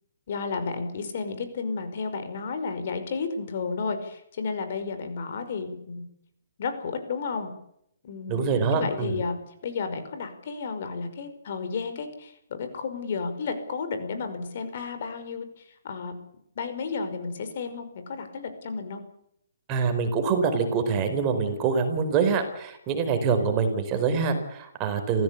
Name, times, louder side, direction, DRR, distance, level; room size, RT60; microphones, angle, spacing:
voice 1, 0.3-6.1 6.6-7.5 8.0-8.4 8.7-9.4 9.6-16.1 16.6-19.0 21.5-21.6, left 4 dB, 55° left, 8 dB, 5.3 m, -32 dB
voice 2, 8.3-9.2 19.7-25.2, right 5 dB, 25° right, 6 dB, 4.6 m, -25 dB
28.5 x 16.0 x 8.4 m, 0.73 s
hypercardioid pair, 155°, 0 cm